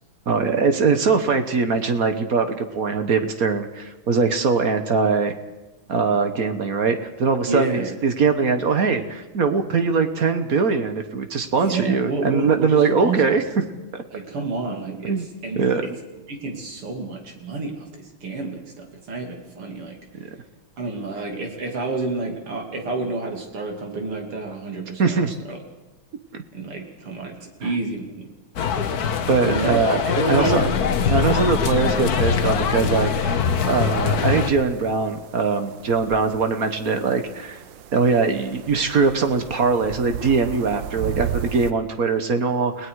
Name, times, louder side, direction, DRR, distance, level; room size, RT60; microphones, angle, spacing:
voice 1, 0.3-5.3 5.9-13.4 13.9-14.0 15.0-15.3 15.5-15.9 20.1-20.3 25.0-25.4 26.3-26.4 27.6-27.7 29.3-30.0 30.3-30.7 31.1-33.4 33.7-37.6 37.9-42.9, right 4 dB, 50° right, 8 dB, 1.4 m, -21 dB
voice 2, 7.5-7.9 11.6-13.4 14.1-15.2 15.4-15.9 16.3-20.0 20.8-25.6 26.5-28.3 29.4-29.8 30.1-30.8, right 3 dB, 85° right, 2 dB, 3.7 m, -29 dB
sound 1, 28.6-34.5, left 7 dB, 50° left, 1.3 m, -23 dB
sound 2, 30.3-35.0, left 4 dB, 20° right, 1.9 m, -34 dB
sound 3, 33.4-41.7, right 11 dB, 65° right, 1.4 m, -36 dB
29.5 x 18.5 x 4.8 m, 1.2 s
omnidirectional pair, 2.4 m